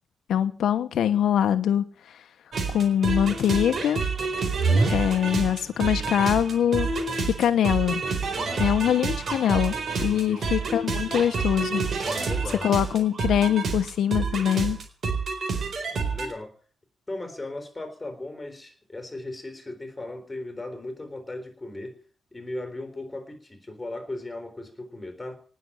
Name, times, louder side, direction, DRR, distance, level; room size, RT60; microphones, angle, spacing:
voice 1, 0.3-2.3 2.7-4.0 4.9-6.9 7.4-8.0 8.6-11.8 12.6-14.8, left 9 dB, 80° left, 9 dB, 1.1 m, -23 dB
sound 1, 2.5-16.3, right 4 dB, 50° right, 4.2 m, -28 dB
voice 2, 8.3-8.8 10.0-10.5 12.0-12.7 15.9-16.6 17.1-22.0 22.3-25.4, left 2 dB, 15° left, 7 dB, 3.9 m, -37 dB
19.0 x 6.9 x 9.9 m, 0.42 s
wide cardioid pair, 150°, 0 cm